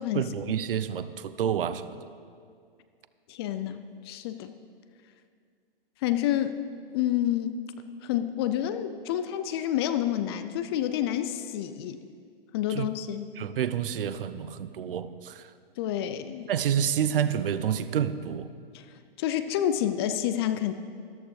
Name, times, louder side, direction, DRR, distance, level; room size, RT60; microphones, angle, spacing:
voice 1, 0.1-2.1 12.7-12.9 13.4-15.5 16.5-18.5, right 9 dB, 65° right, 13 dB, 0.7 m, -29 dB
voice 2, 3.3-4.5 6.0-6.6 6.9-7.6 8.0-12.0 12.5-13.4 15.8-16.5 18.7-18.9 19.2-20.7, left 11 dB, 25° left, 10 dB, 0.4 m, -29 dB
14.0 x 13.5 x 3.2 m, 2.2 s
hypercardioid pair, 125°, 30 cm